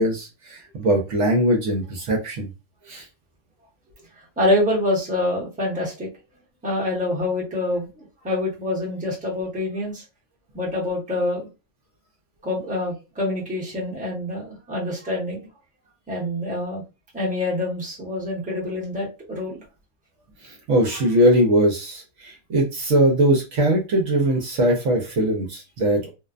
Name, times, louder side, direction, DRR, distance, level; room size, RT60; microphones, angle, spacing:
voice 1, 0.0-2.5 2.9-3.0 20.7-26.1, right 1 dB, 65° right, 1 dB, 0.9 m, -21 dB
voice 2, 4.4-6.1 6.6-10.0 10.5-11.5 12.4-15.5 16.1-16.8 17.1-19.6, left 1 dB, 5° right, -5 dB, 0.8 m, -26 dB
2.6 x 2.1 x 2.4 m, 0.28 s
omnidirectional pair, 1.5 m